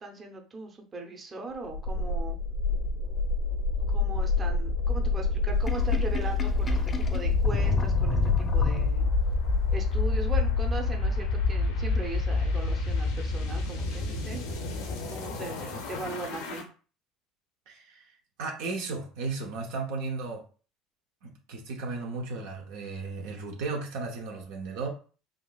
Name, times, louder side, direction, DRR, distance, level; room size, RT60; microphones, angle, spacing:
voice 1, 0.0-2.4 3.9-9.1 9.7-14.4 15.1-16.7, right 3 dB, 30° right, 2 dB, 0.8 m, -39 dB
sound 1, 1.7-16.6, left 3 dB, 75° left, 0.7 m, -27 dB
Sink (filling or washing), 5.5-9.3, left 3 dB, 30° left, 0.5 m, -33 dB
voice 2, 17.7-18.0 18.4-20.4 21.2-24.9, right 3 dB, 70° right, 1 dB, 0.7 m, -35 dB
3.6 x 2.5 x 2.3 m, 0.37 s
hypercardioid pair, 75°, 0 cm